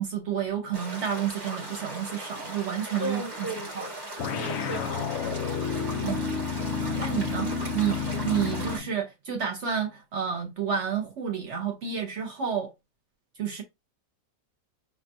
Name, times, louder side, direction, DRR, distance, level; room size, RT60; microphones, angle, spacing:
voice 1, 0.0-3.9 6.0-6.2 7.0-7.5 7.7-12.7 13.4-13.6, right 8 dB, 60° right, 0.9 m, -30 dB
sound 1, 0.7-8.8, right 1 dB, 20° right, 1.1 m, -38 dB
voice 2, 3.0-4.0 4.3-5.6, right 1 dB, 20° left, 1.0 m, -37 dB
sound 2, 4.2-8.9, left 6 dB, 60° left, 0.7 m, -30 dB
5.8 x 2.3 x 2.6 m
omnidirectional pair, 1.5 m